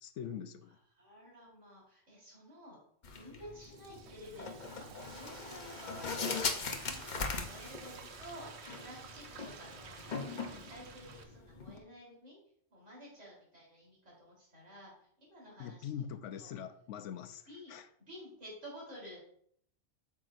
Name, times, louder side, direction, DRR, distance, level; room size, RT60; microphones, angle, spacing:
voice 1, 0.0-0.8 15.6-17.4 17.7-17.9, left 8 dB, 90° left, 10 dB, 1.0 m, -43 dB
voice 2, 1.0-2.8 3.1-4.9 5.1-8.5 8.8-12.4 12.7-15.9 16.4-16.5 17.5-19.2, equal, 85° right, -5 dB, 3.8 m, -52 dB
sound 1, 3.0-11.8, left 4 dB, 45° left, 0.8 m, -40 dB
Frying (food), 3.4-11.2, right 5 dB, 70° right, 1.0 m, -52 dB
8.4 x 6.2 x 2.5 m, 0.64 s
omnidirectional pair, 1.2 m